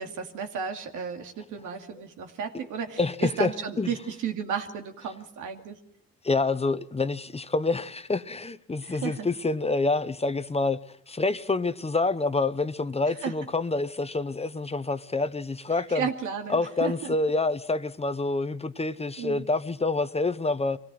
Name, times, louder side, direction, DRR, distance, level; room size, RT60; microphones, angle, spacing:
voice 1, 0.0-5.8 8.8-9.3 13.2-13.3 15.9-17.2 19.2-19.5, right 7 dB, 85° right, 2.6 m, -33 dB
voice 2, 3.0-3.5 3.8-3.9 6.2-10.8 11.1-16.1 16.5-20.8, left 3 dB, 20° left, 0.9 m, -27 dB
24.0 x 18.0 x 7.7 m
cardioid pair, 90°, 30 cm